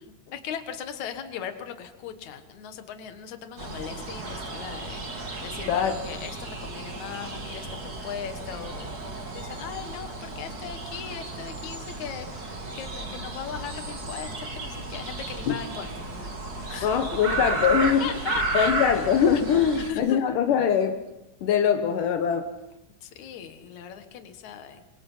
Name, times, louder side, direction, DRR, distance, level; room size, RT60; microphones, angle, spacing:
voice 1, 0.3-16.9 17.3-17.4 18.0-18.8 19.9-20.2 23.0-24.8, left 8 dB, 65° left, 8 dB, 1.9 m, -39 dB
sound 1, 3.6-19.9, right 2 dB, 35° right, 1.6 m, -33 dB
voice 2, 16.8-18.1 18.5-21.0 21.4-22.5, left 7 dB, 85° left, 6 dB, 1.8 m, -22 dB
29.0 x 24.0 x 5.7 m, 0.92 s
omnidirectional pair, 5.7 m